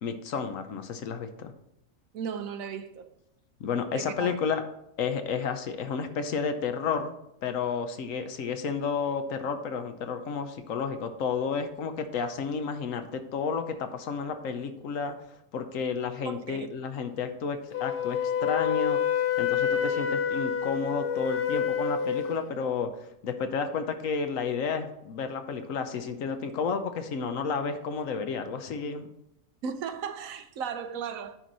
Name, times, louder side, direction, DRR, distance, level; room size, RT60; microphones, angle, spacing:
voice 1, 0.0-1.5 3.6-4.6 5.0-7.1 7.4-15.1 15.5-19.0 19.4-22.9 23.2-29.1, left 5 dB, 70° left, 1.1 m, -31 dB
voice 2, 2.1-3.1 3.9-4.4 16.2-16.7 29.6-31.4, right 6 dB, 80° right, 1.1 m, -36 dB
Wind instrument woodwind instrument, 17.7-22.5, left 8 dB, 55° left, 0.7 m, -28 dB
10.0 x 4.6 x 4.0 m
omnidirectional pair, 1.5 m